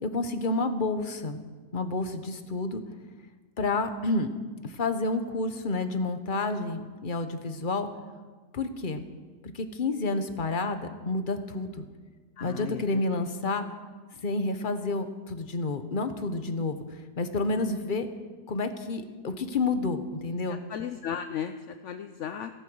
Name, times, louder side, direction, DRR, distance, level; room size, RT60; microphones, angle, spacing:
voice 1, 0.0-1.4 1.7-2.8 3.6-4.3 4.6-7.9 8.5-9.0 9.4-11.9 12.4-13.7 14.2-18.1 18.5-20.6, left 3 dB, 35° left, 8 dB, 1.1 m, -29 dB
voice 2, 12.4-13.0 20.5-22.5, left 8 dB, 60° left, 8 dB, 0.8 m, -35 dB
16.0 x 14.0 x 6.3 m, 1.4 s
omnidirectional pair, 1.8 m